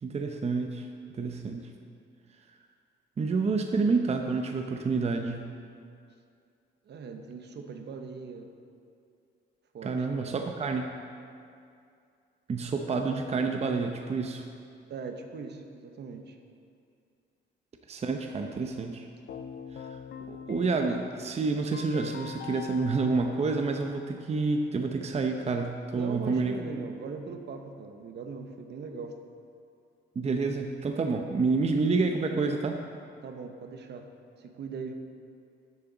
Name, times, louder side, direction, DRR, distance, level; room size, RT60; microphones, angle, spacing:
voice 1, 0.0-1.7 3.2-5.5 9.8-10.9 12.5-14.4 17.9-19.1 20.3-26.6 30.2-32.8, right 4 dB, 30° right, 4 dB, 0.7 m, -28 dB
voice 2, 6.9-8.5 9.7-10.5 14.9-16.4 25.9-29.2 33.2-34.1 34.4-34.9, right 5 dB, 60° right, 5 dB, 1.0 m, -40 dB
Keyboard (musical), 19.3-24.3, left 7 dB, 60° left, 0.6 m, -44 dB
12.5 x 7.4 x 4.0 m, 2.4 s
cardioid pair, 90°, 20 cm